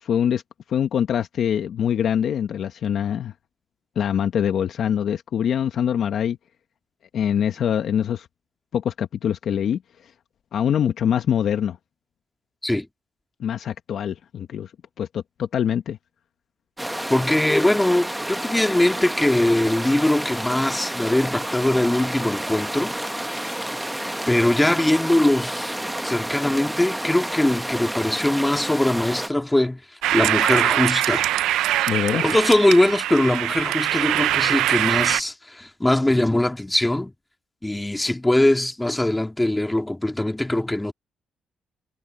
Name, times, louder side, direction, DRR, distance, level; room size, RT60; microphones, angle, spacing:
voice 1, 0.0-0.4 0.7-3.3 3.9-6.4 7.1-8.3 8.7-9.8 10.5-11.8 13.4-14.7 15.0-16.0 31.9-32.3, left 9 dB, 65° left, 1.3 m, -24 dB
sound 1, 16.8-29.3, right 1 dB, 5° right, 1.2 m, -30 dB
voice 2, 17.1-23.6 24.3-25.7 26.0-29.8 30.1-31.3 31.7-31.8 32.2-37.1 37.6-40.9, left 1 dB, 10° left, 2.0 m, -21 dB
sound 2, 30.0-35.2, right 14 dB, 85° right, 0.4 m, -22 dB
cardioid pair, 90°, 0 cm